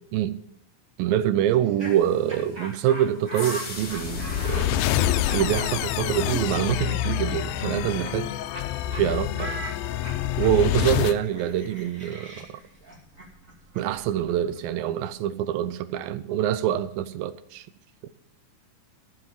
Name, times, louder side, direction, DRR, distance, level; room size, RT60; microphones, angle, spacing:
voice 1, 1.0-4.8 5.3-8.3 9.0-9.6 10.4-12.5 13.8-17.7 18.0-18.1, right 11 dB, 85° right, 2.5 m, -25 dB
Laughter, 1.5-8.7 8.9-9.0 9.4-15.1, right 1 dB, 25° right, 2.6 m, -40 dB
sound 1, 1.8-10.1, left 3 dB, 35° left, 2.8 m, -44 dB
sound 2, 3.8-11.2, left 13 dB, 85° left, 2.4 m, -27 dB
14.5 x 7.6 x 7.3 m
omnidirectional pair, 4.0 m